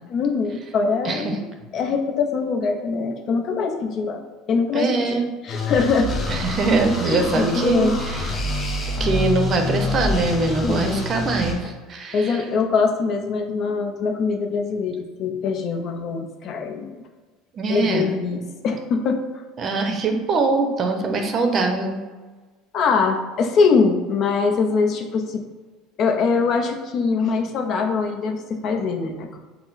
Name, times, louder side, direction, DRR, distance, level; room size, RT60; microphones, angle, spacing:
voice 1, 0.1-1.4 1.7-4.2 4.5-6.2 7.0-8.0 10.6-11.1 12.1-17.0 17.7-19.2 22.7-25.4 26.0-29.4, left 5 dB, 50° left, 4 dB, 0.5 m, -23 dB
voice 2, 4.7-5.3 6.3-8.2 9.0-12.4 17.6-18.1 19.6-22.0, right 3 dB, 40° right, 4 dB, 0.6 m, -22 dB
sound 1, 5.5-11.5, left 2 dB, 30° left, 0.9 m, -27 dB
4.3 x 2.0 x 3.9 m, 1.3 s
supercardioid pair, 110°, 0 cm